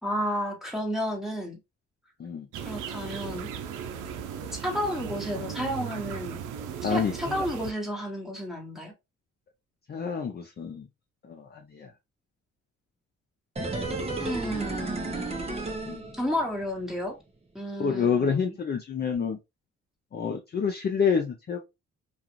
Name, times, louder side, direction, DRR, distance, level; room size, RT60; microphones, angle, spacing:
voice 1, 0.0-1.6 2.6-3.5 4.5-6.4 6.8-8.9 14.2-15.4 16.1-17.1 17.5-18.5, equal, ahead, 1.3 m, -32 dB
sound 1, 2.5-7.7, right 8 dB, 85° right, 0.5 m, -37 dB
voice 2, 6.8-7.4 9.9-10.9 11.2-11.9 15.9-16.1 17.8-19.4 20.1-21.6, left 6 dB, 35° left, 0.5 m, -28 dB
sound 2, 13.6-16.7 17.0-17.1, right 2 dB, 20° right, 0.8 m, -33 dB
2.4 x 2.4 x 2.9 m
cardioid pair, 90°, 30 cm